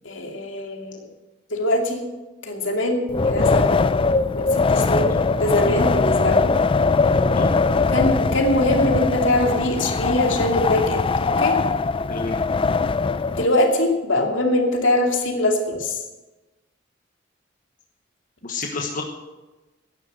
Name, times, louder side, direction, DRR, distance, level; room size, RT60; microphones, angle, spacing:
voice 1, 0.0-1.0 1.5-2.1 2.4-5.1 5.4-6.6 7.9-11.6 13.4-16.0, left 1 dB, 75° left, 2 dB, 2.6 m, -22 dB
Wind, 3.1-13.5, left 4 dB, 30° left, 0.4 m, -21 dB
voice 2, 18.4-19.0, left 3 dB, 45° left, 2 dB, 1.2 m, -28 dB
11.5 x 9.9 x 7.9 m, 1.1 s
head